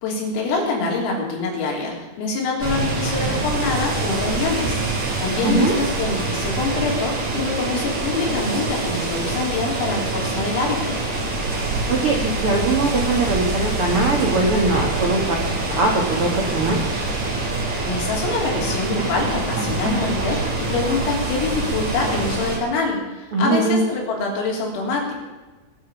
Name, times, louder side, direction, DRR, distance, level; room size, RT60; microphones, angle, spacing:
voice 1, 0.0-11.0 17.8-25.1, left 3 dB, 85° left, -1 dB, 6.2 m, -25 dB
sound 1, 2.6-22.6, right 2 dB, 40° right, 3.9 m, -25 dB
voice 2, 5.4-5.7 11.9-16.8 23.3-23.8, right 3 dB, 80° right, 0 dB, 1.2 m, -21 dB
22.5 x 7.6 x 7.3 m, 1.2 s
omnidirectional pair, 5.9 m